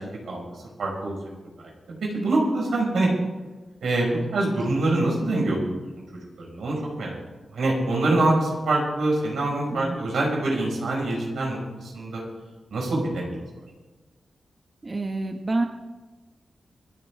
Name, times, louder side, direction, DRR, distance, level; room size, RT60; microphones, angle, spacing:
voice 1, 0.8-1.2 2.1-3.1 3.8-5.6 6.4-7.2 7.5-12.2 12.7-13.3, right 2 dB, 85° right, -2 dB, 5.7 m, -24 dB
voice 2, 9.7-10.0 14.8-15.7, right 2 dB, 40° right, 4 dB, 1.2 m, -28 dB
27.5 x 9.4 x 3.7 m, 1.2 s
cardioid pair, 60°, 0 cm